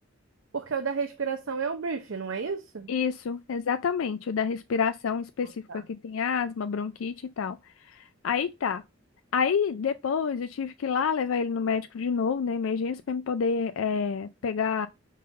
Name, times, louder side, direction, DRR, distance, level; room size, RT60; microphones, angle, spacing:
voice 1, 0.5-2.9 5.4-5.8, right 5 dB, 75° right, 0.7 m, -32 dB
voice 2, 2.9-8.8 9.3-14.9, left 6 dB, 90° left, 0.4 m, -28 dB
5.4 x 3.8 x 5.2 m
head